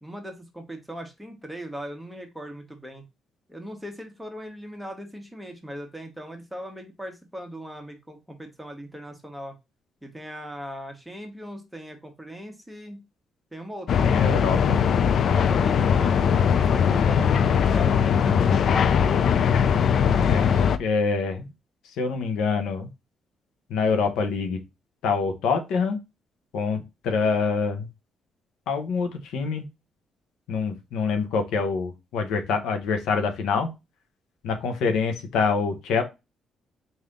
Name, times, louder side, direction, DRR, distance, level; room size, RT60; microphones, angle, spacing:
voice 1, 0.0-3.0 3.5-9.5 10.0-13.0 13.5-14.2 15.2-19.1, equal, 5° right, 3 dB, 1.1 m, -39 dB
sound 1, 13.9-20.8, left 7 dB, 60° left, 0.4 m, -20 dB
voice 2, 14.0-14.8 20.2-21.5 22.0-22.9 23.7-24.6 25.0-26.0 26.5-27.9 28.7-29.6 30.5-33.7 34.4-36.0, left 5 dB, 85° left, 6 dB, 0.8 m, -25 dB
3.4 x 2.7 x 3.5 m, 0.24 s
cardioid pair, 90°, 0 cm